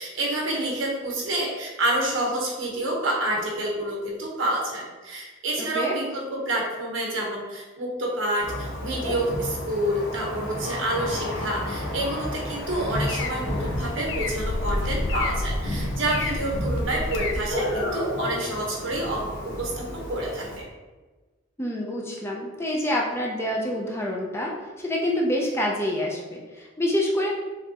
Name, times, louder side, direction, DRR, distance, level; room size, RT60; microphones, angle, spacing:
voice 1, 0.0-20.7, right 1 dB, 85° right, -1 dB, 1.2 m, -28 dB
Thunder, 8.4-20.6, left 1 dB, 50° left, 1.2 m, -32 dB
sound 1, 12.5-17.5, left 2 dB, 70° left, 0.4 m, -31 dB
voice 2, 21.6-27.3, left 1 dB, 15° left, -1 dB, 0.5 m, -27 dB
5.1 x 3.5 x 2.9 m, 1.3 s
head